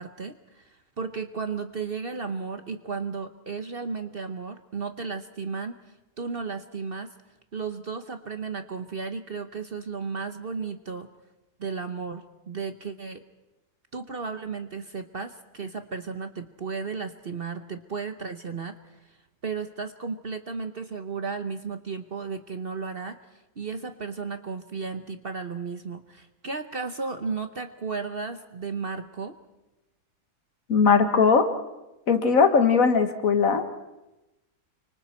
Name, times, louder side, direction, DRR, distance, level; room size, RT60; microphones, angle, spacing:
voice 1, 0.0-5.8 6.2-7.1 7.5-11.1 11.6-13.2 13.9-18.8 19.1-19.2 19.4-23.2 23.6-29.3, right 5 dB, 40° right, 8 dB, 1.0 m, -34 dB
voice 2, 30.7-31.5 32.1-33.6, left 5 dB, 60° left, 8 dB, 1.8 m, -19 dB
29.5 x 25.5 x 4.4 m, 1.0 s
omnidirectional pair, 1.7 m